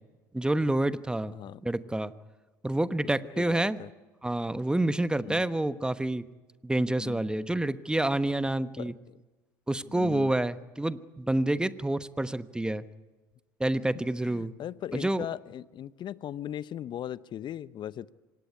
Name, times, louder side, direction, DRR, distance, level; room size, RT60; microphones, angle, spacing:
voice 1, 0.3-1.3 1.6-2.1 2.6-3.8 4.2-6.2 6.6-8.9 9.7-12.8 13.6-14.5 14.9-15.3, right 1 dB, 10° right, 13 dB, 1.1 m, -28 dB
voice 2, 3.3-3.9 5.2-5.4 6.9-7.2 8.8-9.2 9.9-10.3 14.2-18.1, left 11 dB, 45° left, 18 dB, 0.8 m, -39 dB
25.5 x 18.5 x 9.7 m, 1.2 s
hypercardioid pair, 65°, 10 cm